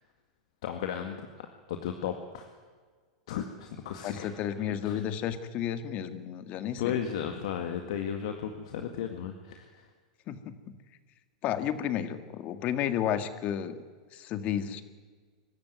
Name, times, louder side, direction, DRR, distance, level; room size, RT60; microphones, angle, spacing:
voice 1, 0.6-2.4 3.3-4.3 4.8-5.0 6.8-9.8, left 8 dB, 70° left, 5 dB, 2.0 m, -35 dB
voice 2, 4.0-7.0 10.3-10.8 11.4-13.8 14.1-14.8, left 10 dB, 40° left, 10 dB, 1.9 m, -32 dB
24.0 x 14.0 x 9.4 m, 1.5 s
hypercardioid pair, 115°, 3 cm